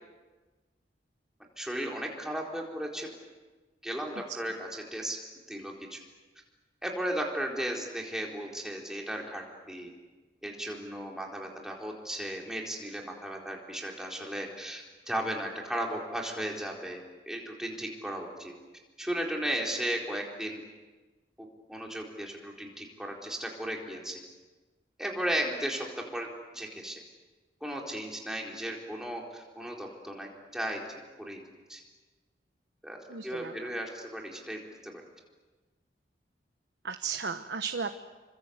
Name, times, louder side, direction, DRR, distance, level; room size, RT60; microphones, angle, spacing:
voice 1, 1.6-3.1 3.8-5.2 5.5-6.0 6.8-9.9 10.4-17.0 17.3-18.5 19.0-20.6 21.4-24.2 25.0-25.9 26.1-26.3 26.5-27.0 27.6-31.4 31.7-31.8 32.8-33.0 33.2-34.9, right 1 dB, 5° right, -1 dB, 4.3 m, -35 dB
voice 2, 33.1-33.7 36.8-38.0, right 5 dB, 90° right, 7 dB, 1.2 m, -35 dB
29.0 x 25.0 x 8.1 m, 1.3 s
head